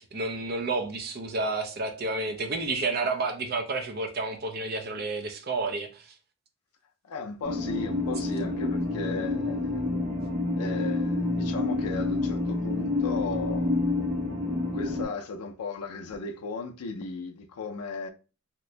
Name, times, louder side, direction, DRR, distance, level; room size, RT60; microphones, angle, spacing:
voice 1, 0.0-6.1, right 3 dB, 45° right, 0.5 m, -30 dB
voice 2, 7.0-9.7 10.5-13.7 14.7-18.1, left 4 dB, 85° left, 0.4 m, -36 dB
sound 1, 7.4-15.0, left 2 dB, 70° right, 1.5 m, -28 dB
2.9 x 2.5 x 3.2 m
head